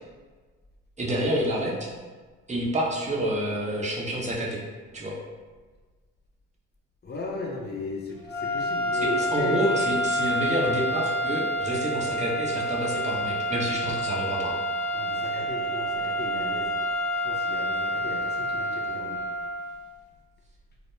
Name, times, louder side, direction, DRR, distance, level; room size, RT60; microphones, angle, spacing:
voice 1, 1.0-1.9 2.5-4.6 4.9-5.2 9.0-14.6, right 1 dB, 20° right, -3 dB, 0.7 m, -28 dB
voice 2, 7.0-9.6 14.9-16.8 17.2-19.2, left 2 dB, 30° left, -1 dB, 0.6 m, -36 dB
sound 1, 8.3-19.8, equal, 5° left, 1.0 m, -28 dB
2.2 x 2.1 x 3.0 m, 1.4 s
supercardioid pair, 60°, 32 cm